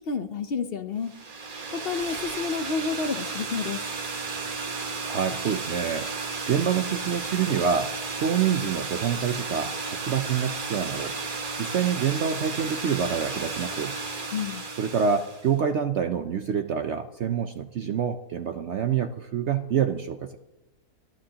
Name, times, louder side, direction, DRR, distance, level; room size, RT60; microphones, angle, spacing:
voice 1, 0.1-1.1 1.7-3.8 14.3-14.6, left 5 dB, 55° left, 9 dB, 0.7 m, -30 dB
sound 1, 1.1-15.5, right 4 dB, 35° right, 1.1 m, -33 dB
voice 2, 5.0-11.1 11.6-14.0 14.8-20.4, right 7 dB, 60° right, 7 dB, 0.7 m, -27 dB
26.5 x 12.0 x 2.9 m, 0.97 s
omnidirectional pair, 1.7 m